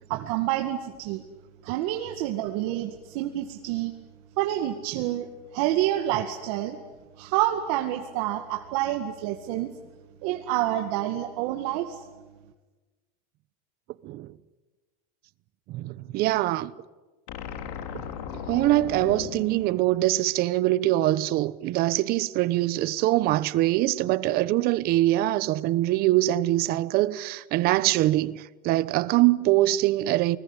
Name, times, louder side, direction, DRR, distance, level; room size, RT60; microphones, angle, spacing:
voice 1, 0.1-1.2 1.6-3.9 4.4-6.8 7.2-9.7 10.2-12.0, right 13 dB, 70° right, 2.1 m, -28 dB
voice 2, 14.0-14.3 15.7-16.7 18.5-30.4, right 16 dB, 50° right, 1.1 m, -23 dB
sound 1, 17.3-20.6, left 8 dB, 85° left, 3.2 m, -38 dB
29.0 x 20.0 x 10.0 m
supercardioid pair, 140°, 19 cm